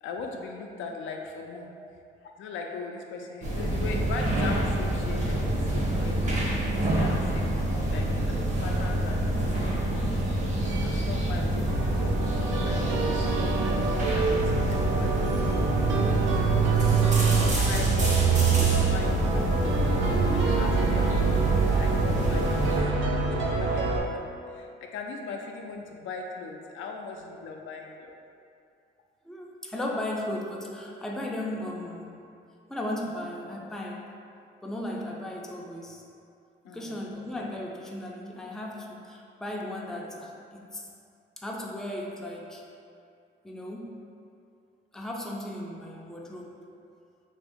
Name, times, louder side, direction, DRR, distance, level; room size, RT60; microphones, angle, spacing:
voice 1, 0.0-1.7 2.4-7.5 7.9-9.8 10.7-13.4 13.8-14.3 14.6-16.2 17.5-24.2 24.5-28.2 36.6-37.1, left 4 dB, 75° left, 2 dB, 0.4 m, -39 dB
sound 1, 3.4-22.8, right 1 dB, 35° right, 0.8 m, -27 dB
sound 2, 11.7-24.0, right 5 dB, 75° right, 0.5 m, -26 dB
voice 2, 29.2-32.3 32.7-34.1 34.6-36.0 36.7-40.9 41.4-42.7 43.4-44.0 44.9-46.6, left 1 dB, ahead, -2 dB, 0.4 m, -36 dB
2.9 x 2.6 x 3.4 m, 2.4 s
cardioid pair, 90°, 20 cm